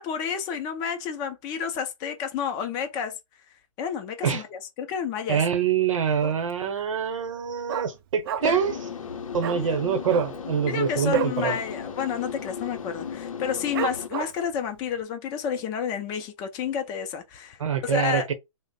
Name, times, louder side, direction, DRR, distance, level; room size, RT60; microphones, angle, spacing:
voice 1, 0.0-3.2 3.8-5.4 8.4-8.6 9.5-9.8 10.7-18.3, left 7 dB, 25° left, 0.4 m, -30 dB
voice 2, 5.3-8.7 9.3-11.6 17.6-18.3, right 7 dB, 70° right, 0.8 m, -25 dB
Dog, 6.2-6.6 6.9-7.0 7.3-8.7 9.0-9.1 9.4-9.6 10.0-11.4 11.8-11.9 12.2-12.6 13.1-13.2 13.7-14.5 15.0-15.1, right 9 dB, 45° right, 0.4 m, -31 dB
sound 1, 8.4-14.1, left 6 dB, 85° left, 0.6 m, -36 dB
3.1 x 2.0 x 4.1 m
hypercardioid pair, 140°, 17 cm